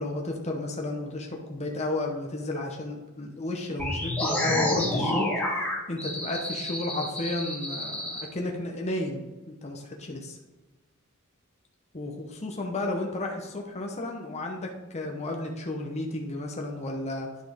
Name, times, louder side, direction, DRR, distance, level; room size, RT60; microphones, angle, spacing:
voice 1, 0.0-5.3 5.9-9.2 9.5-10.4 11.9-17.3, left 2 dB, 30° left, 1 dB, 0.9 m, -32 dB
sound 1, 3.8-8.2, left 1 dB, 5° left, 2.0 m, -29 dB
9.5 x 5.8 x 3.5 m, 1.2 s
head